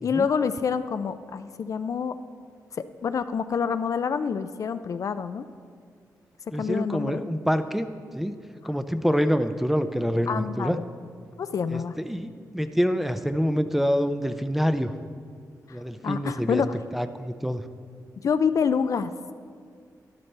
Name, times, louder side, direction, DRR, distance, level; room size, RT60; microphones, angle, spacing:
voice 1, 0.0-2.2 3.0-5.4 6.6-7.2 10.3-10.8 11.4-12.0 15.7-15.8 16.0-16.7 18.2-19.1, left 6 dB, 55° left, 11 dB, 0.4 m, -27 dB
voice 2, 6.5-7.9 8.2-8.4 8.6-10.8 11.7-14.9 15.7-16.6 16.9-17.7, equal, 5° right, 10 dB, 0.5 m, -26 dB
12.0 x 11.5 x 3.3 m, 2.1 s
wide cardioid pair, 105°, 7 cm